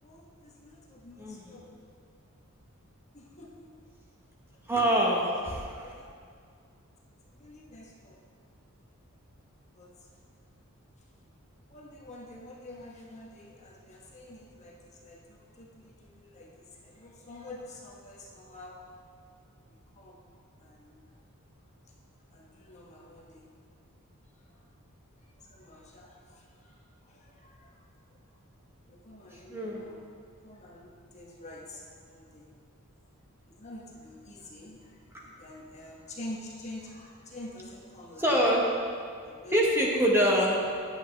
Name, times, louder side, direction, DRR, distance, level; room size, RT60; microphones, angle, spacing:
voice 1, 0.0-1.6 3.1-3.7 4.5-4.6 5.5-6.1 7.3-8.2 9.7-9.9 11.7-18.8 19.7-20.2 20.6-21.0 22.3-23.5 24.5-24.6 25.4-28.2 28.9-30.1 30.4-32.5 33.5-38.4 39.2-39.6 40.1-40.2 40.5-40.6, left 1 dB, 30° left, -2 dB, 1.1 m, -48 dB
voice 2, 1.2-1.7 4.7-5.8 29.5-29.8 38.2-38.6 39.5-40.6, equal, 10° right, -3 dB, 1.1 m, -25 dB
10.0 x 8.1 x 3.2 m, 2.2 s
head